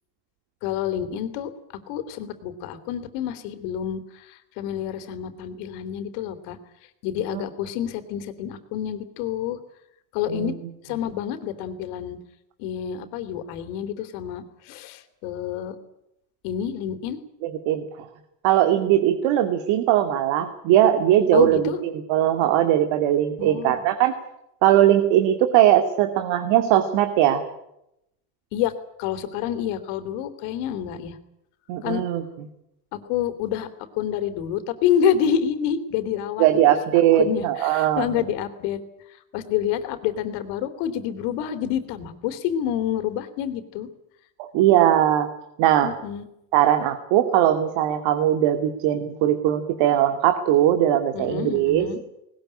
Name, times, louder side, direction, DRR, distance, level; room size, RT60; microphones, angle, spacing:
voice 1, 0.6-1.5 1.9-6.6 7.0-9.6 10.1-12.2 12.6-15.8 16.4-17.2 21.3-21.8 23.4-23.8 28.5-28.7 29.0-31.2 31.8-32.0 32.9-33.7 33.9-36.4 37.1-38.8 39.3-43.9 45.8-46.2 51.1-52.0, left 9 dB, 80° left, 9 dB, 3.4 m, -28 dB
voice 2, 17.4-18.1 18.4-24.1 24.6-27.4 31.7-32.2 36.4-38.1 44.4-45.3 45.6-45.9 46.5-51.9, right 12 dB, 65° right, 7 dB, 2.4 m, -20 dB
20.0 x 20.0 x 9.9 m, 0.81 s
cardioid pair, 135°, 48 cm